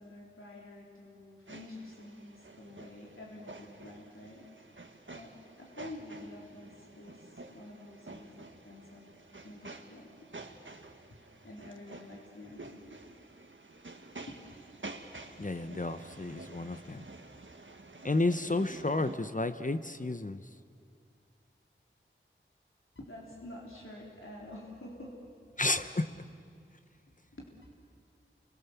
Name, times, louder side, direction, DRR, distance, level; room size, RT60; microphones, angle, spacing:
voice 1, 0.0-4.7 5.1-9.1 9.4-10.3 11.1-12.8 14.3-14.4 23.0-25.6 26.1-26.2 27.3-27.5, left 1 dB, 75° left, -3 dB, 3.5 m, -49 dB
sound 1, 1.5-19.2, right 2 dB, 65° right, 1.7 m, -50 dB
voice 2, 15.4-17.1 18.0-20.4 25.6-26.1, left 2 dB, 40° left, 10 dB, 0.9 m, -31 dB
29.5 x 24.0 x 7.2 m, 2.3 s
wide cardioid pair, 50°, 21 cm